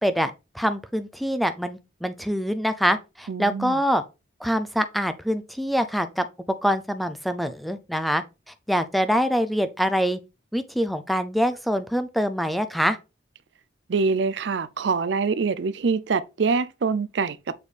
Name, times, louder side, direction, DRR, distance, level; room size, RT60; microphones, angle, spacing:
voice 1, 0.0-4.0 4.4-6.3 6.6-8.2 8.7-10.2 10.5-13.0, equal, ahead, 0.4 m, -24 dB
voice 2, 3.3-3.8 13.9-17.4, right 4 dB, 65° right, 0.5 m, -25 dB
7.0 x 4.2 x 3.3 m
head